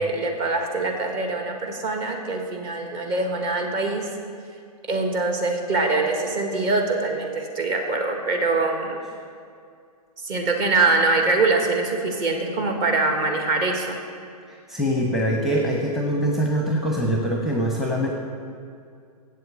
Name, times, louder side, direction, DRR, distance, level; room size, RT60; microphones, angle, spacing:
voice 1, 0.0-4.1 4.9-9.0 10.2-14.0, right 3 dB, 35° right, 2 dB, 1.7 m, -23 dB
voice 2, 14.5-18.1, equal, ahead, 0 dB, 0.9 m, -23 dB
7.8 x 7.7 x 8.3 m, 2.3 s
figure-of-eight pair, 120°, 20 cm